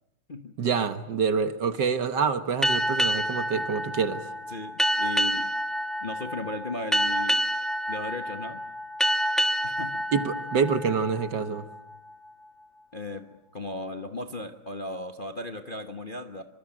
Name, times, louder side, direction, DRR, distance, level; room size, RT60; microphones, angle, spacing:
voice 1, 0.6-4.3 10.1-11.7, right 5 dB, 55° right, 1.8 m, -26 dB
sound 1, 2.6-11.8, equal, ahead, 0.8 m, -28 dB
voice 2, 4.5-5.5 6.0-7.5 7.9-8.6 9.6-10.0 12.9-16.4, left 2 dB, 35° left, 0.9 m, -36 dB
25.5 x 25.0 x 9.0 m
omnidirectional pair, 2.4 m